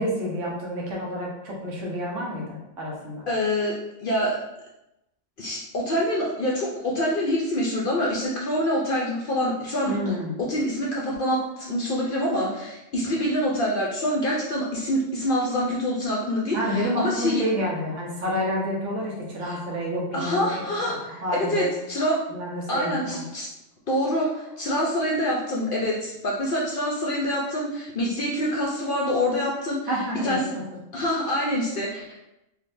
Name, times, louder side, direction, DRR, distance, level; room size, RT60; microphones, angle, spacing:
voice 1, 0.0-3.2 9.9-10.3 16.5-21.7 22.3-23.2 29.9-30.6, equal, 70° right, -3 dB, 1.2 m, -29 dB
voice 2, 3.3-3.7 4.0-4.4 5.4-10.1 10.4-17.4 19.4-19.6 20.1-22.2 22.7-23.5 23.9-29.9 30.2-30.5 30.9-32.2, equal, 60° left, -3 dB, 0.6 m, -26 dB
3.6 x 2.6 x 2.5 m, 0.90 s
omnidirectional pair, 1.3 m